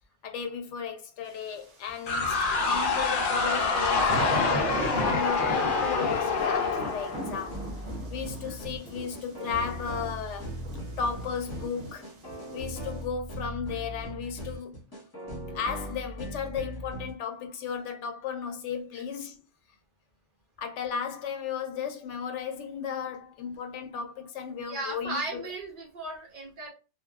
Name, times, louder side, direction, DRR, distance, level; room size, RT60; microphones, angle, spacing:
voice 1, 0.2-7.6 8.1-10.5 11.0-12.1 12.5-14.8 15.5-19.4 20.6-25.4, left 6 dB, 80° left, 0.9 m, -35 dB
sound 1, 2.1-7.8, left 4 dB, 60° left, 0.6 m, -27 dB
sound 2, 3.2-12.8, right 1 dB, 70° right, 1.0 m, -38 dB
sound 3, 7.4-17.1, right 1 dB, 20° left, 0.7 m, -39 dB
voice 2, 24.7-26.7, right 2 dB, 50° right, 0.9 m, -36 dB
2.8 x 2.2 x 2.3 m
omnidirectional pair, 1.2 m